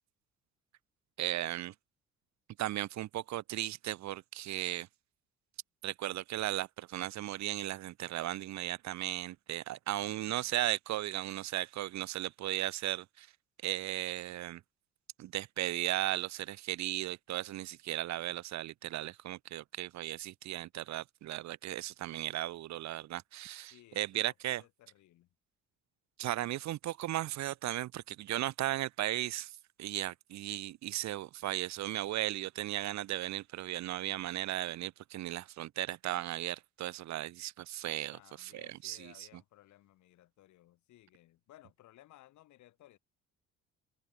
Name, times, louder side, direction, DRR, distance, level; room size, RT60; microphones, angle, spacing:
voice 1, 1.2-1.7 2.6-4.9 5.8-13.3 13.6-14.6 15.2-24.6 26.2-39.3, right 14 dB, 70° right, 1.4 m, -36 dB
voice 2, 10.0-10.5 23.7-25.3 38.1-43.0, left 15 dB, 75° left, 6.5 m, -60 dB
open air
cardioid pair, 95°, 29 cm